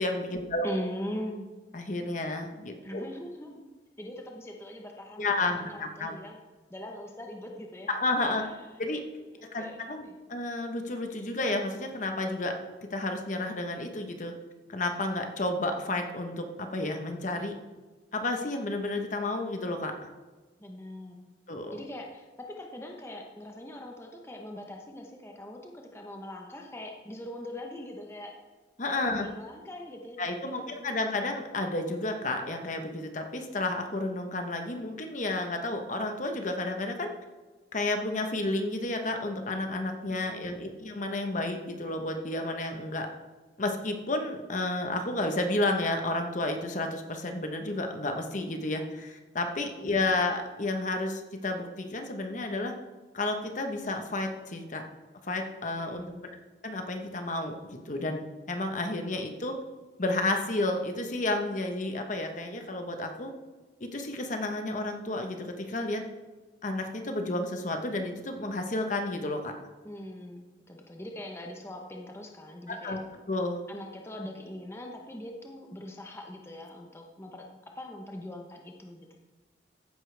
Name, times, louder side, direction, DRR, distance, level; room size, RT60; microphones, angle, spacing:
voice 1, 0.0-0.7 1.7-3.0 5.2-6.1 7.9-8.4 8.8-9.0 9.5-12.5 12.9-14.3 14.7-17.5 18.1-20.1 21.5-21.8 28.8-29.3 30.2-37.1 37.7-43.1 43.6-52.7 53.1-54.8 55.3-56.0 56.6-59.6 60.0-63.3 63.8-66.0 66.6-69.5 72.7-73.0 73.3-73.6, left 2 dB, 45° left, 5 dB, 1.1 m, -31 dB
voice 2, 0.6-1.5 2.8-3.7 4.0-6.4 6.7-7.9 8.4-8.6 9.2-9.8 10.0-10.2 20.6-21.3 21.7-28.3 29.0-30.9 40.1-40.6 49.6-50.1 55.9-56.4 69.8-73.0 73.7-79.2, left 1 dB, 15° left, 1 dB, 0.9 m, -41 dB
14.5 x 9.8 x 3.4 m, 1.3 s
head